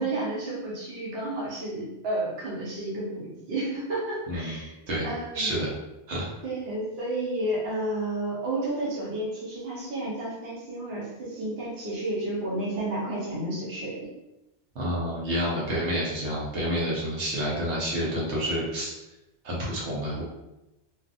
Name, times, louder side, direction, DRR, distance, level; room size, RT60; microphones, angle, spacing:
voice 1, 0.0-4.7 5.0-5.5 6.4-14.1, right 1 dB, 65° right, -5 dB, 1.0 m, -31 dB
voice 2, 5.3-5.7 6.1-6.3 14.7-18.9 19.4-20.2, equal, 80° right, -5 dB, 1.1 m, -29 dB
2.5 x 2.4 x 2.5 m, 0.94 s
omnidirectional pair, 1.2 m